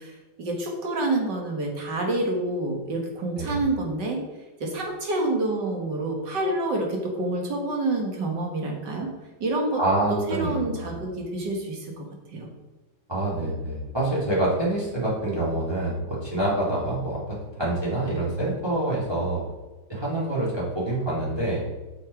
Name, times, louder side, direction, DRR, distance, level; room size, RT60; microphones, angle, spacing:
voice 1, 0.0-4.2 4.6-9.1 9.4-9.8 10.1-12.1 12.3-12.5, right 2 dB, 55° right, 1 dB, 2.3 m, -28 dB
voice 2, 9.8-11.0 13.1-19.4 19.9-21.6, right 1 dB, 10° right, -7 dB, 3.2 m, -26 dB
8.0 x 6.5 x 4.9 m, 1.2 s
omnidirectional pair, 2.3 m